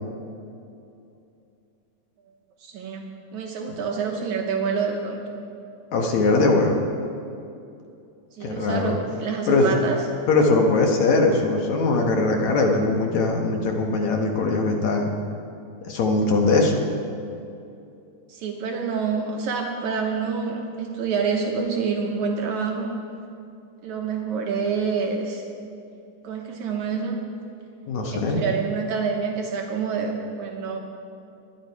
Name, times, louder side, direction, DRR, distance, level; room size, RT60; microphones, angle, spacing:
voice 1, 2.6-3.1 3.3-5.2 8.3-10.0 18.3-22.9 23.8-25.4 26.2-27.2 28.1-30.8, right 5 dB, 70° right, 1 dB, 2.2 m, -27 dB
voice 2, 5.9-6.8 8.4-9.0 9.5-9.8 10.3-15.1 15.8-16.8 27.9-28.4, left 3 dB, 65° left, 2 dB, 2.4 m, -21 dB
22.5 x 10.5 x 4.7 m, 2.6 s
omnidirectional pair, 3.8 m